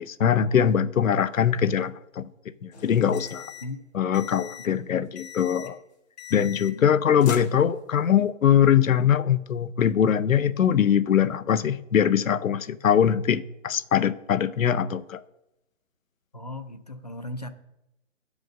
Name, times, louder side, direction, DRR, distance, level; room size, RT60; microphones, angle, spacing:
voice 1, 0.0-2.2 2.6-3.5 3.9-5.8 6.3-15.2, left 8 dB, 85° left, 0.7 m, -22 dB
sound 1, 2.7-3.8 4.1-4.8 5.2-5.8 6.2-6.9 7.2-8.1, left 7 dB, 55° left, 1.6 m, -41 dB
voice 2, 4.6-5.1 16.3-17.5, left 2 dB, 35° left, 0.4 m, -39 dB
8.1 x 5.2 x 6.1 m
hypercardioid pair, 160°, 39 cm